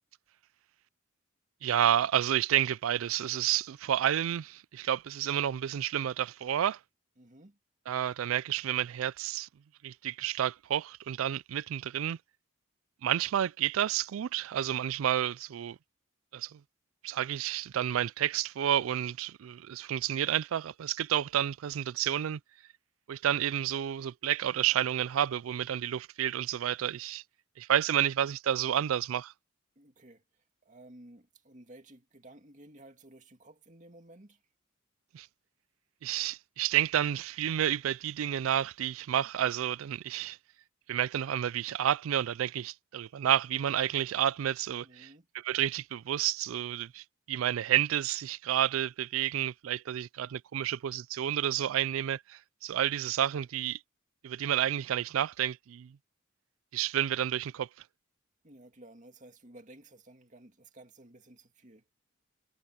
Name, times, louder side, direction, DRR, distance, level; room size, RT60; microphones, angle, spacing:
voice 1, 1.6-6.8 7.9-9.5 9.8-12.2 13.0-15.8 16.3-16.6 17.0-22.4 23.1-27.2 27.6-29.3 35.1-35.3 36.0-40.4 40.9-45.1 45.4-53.8 54.2-56.0 56.7-57.7, right 10 dB, 80° right, 0.3 m, -30 dB
voice 2, 7.2-7.6 29.8-34.4 44.8-45.3 58.4-61.9, right 1 dB, 35° right, 2.3 m, -54 dB
head